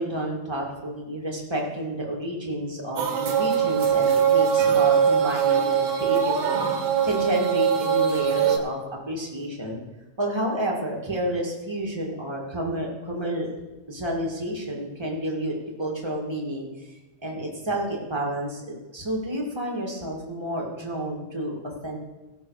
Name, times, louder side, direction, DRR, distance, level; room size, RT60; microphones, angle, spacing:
voice 1, 0.0-8.8 9.1-9.8 10.2-13.5 13.9-17.0 17.2-22.0, right 1 dB, 15° right, -2 dB, 0.8 m, -30 dB
sound 1, 3.0-8.6, right 8 dB, 65° right, 2.1 m, -22 dB
17.5 x 6.1 x 4.7 m, 1.1 s
omnidirectional pair, 3.6 m